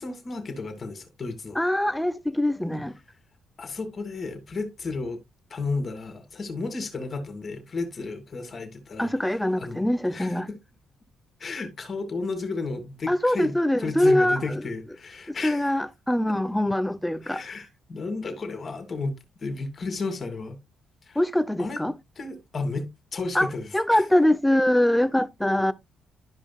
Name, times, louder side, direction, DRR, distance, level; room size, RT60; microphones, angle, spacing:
voice 1, 0.0-1.6 3.6-5.2 5.5-9.1 9.6-9.8 10.1-10.6 11.4-15.7 16.3-16.4 17.2-19.1 19.4-20.6 21.1-21.2 21.6-21.8 22.2-24.0, left 3 dB, 40° left, 2.2 m, -33 dB
voice 2, 1.6-2.9 9.0-10.5 13.1-14.6 15.3-17.4 21.2-21.9 23.3-23.5 23.7-25.7, left 1 dB, 5° left, 0.7 m, -23 dB
12.0 x 5.2 x 2.3 m
cardioid pair, 90°, 0 cm